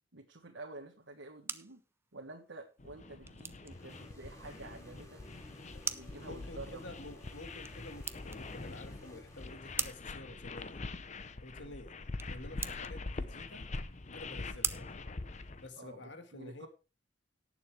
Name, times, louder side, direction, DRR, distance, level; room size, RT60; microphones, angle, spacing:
voice 1, 0.1-1.8 2.1-5.2 5.9-6.8 9.8-9.9 11.6-11.7 14.5-14.6 15.8-16.7, right 2 dB, 80° right, 1.5 m, -50 dB
sound 1, 1.0-16.0, right 5 dB, 15° right, 0.6 m, -45 dB
sound 2, 2.8-15.7, left 3 dB, 40° left, 0.8 m, -44 dB
sound 3, 3.7-10.2, left 1 dB, 15° left, 2.8 m, -55 dB
voice 2, 6.2-10.8 11.4-11.9 12.3-13.7 14.1-14.9 15.6-16.7, left 2 dB, 65° left, 1.8 m, -50 dB
18.0 x 6.9 x 3.3 m
head